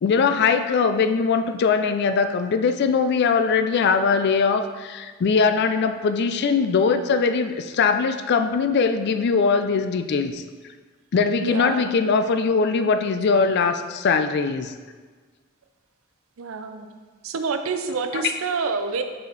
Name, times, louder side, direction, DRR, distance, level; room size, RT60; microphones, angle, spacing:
voice 1, 0.0-10.4 11.1-14.7 18.1-18.2, left 5 dB, 55° left, 9 dB, 0.3 m, -21 dB
voice 2, 11.4-11.9 16.4-16.9 17.2-19.0, right 4 dB, 75° right, 8 dB, 0.5 m, -27 dB
5.1 x 5.0 x 3.9 m, 1.4 s
head